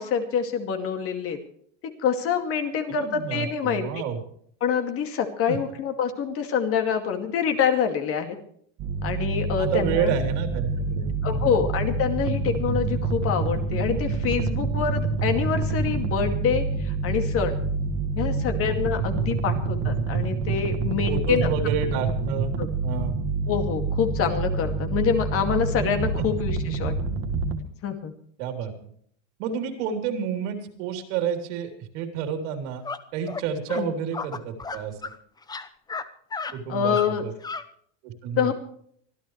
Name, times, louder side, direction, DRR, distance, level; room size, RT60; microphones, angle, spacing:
voice 1, 0.0-1.4 1.8-3.9 4.6-8.4 9.0-10.1 11.2-17.5 18.2-21.5 22.6-22.7 23.5-26.9 27.8-28.1 33.8-33.9 36.7-37.2 38.4-38.5, left 7 dB, 35° left, 6 dB, 2.3 m, -26 dB
voice 2, 2.9-4.2 5.5-5.6 9.6-11.6 18.2-18.5 21.1-22.6 22.8-23.2 26.2-26.3 28.4-28.7 29.4-32.8 33.1-35.0 36.5-37.3 38.0-38.5, right 7 dB, 65° right, 6 dB, 3.6 m, -30 dB
sound 1, 8.8-27.6, right 3 dB, 40° right, 1.9 m, -27 dB
sound 2, 32.8-33.0 33.3-33.4 33.7-33.8 34.1-35.2 35.4-36.1 36.3-36.5 36.9-37.1 37.4-37.6, left 4 dB, 10° left, 0.8 m, -33 dB
24.5 x 14.0 x 3.2 m, 0.63 s
supercardioid pair, 150°, 38 cm